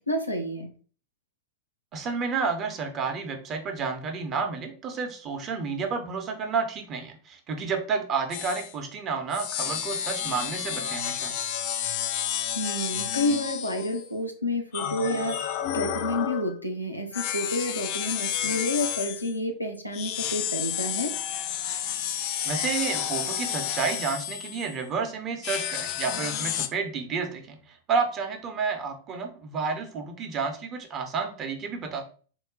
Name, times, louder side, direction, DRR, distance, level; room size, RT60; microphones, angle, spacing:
voice 1, 0.1-0.7 12.5-21.1, left 1 dB, 90° left, 2 dB, 0.6 m, -29 dB
voice 2, 1.9-11.3 22.4-32.0, right 5 dB, 30° right, 5 dB, 0.8 m, -30 dB
sound 1, 8.3-8.7 9.3-14.1 14.7-16.6 17.1-19.3 19.9-24.8 25.4-26.7, left 10 dB, 45° left, 0.4 m, -31 dB
3.8 x 2.2 x 3.8 m, 0.40 s
figure-of-eight pair, 90°, 0 cm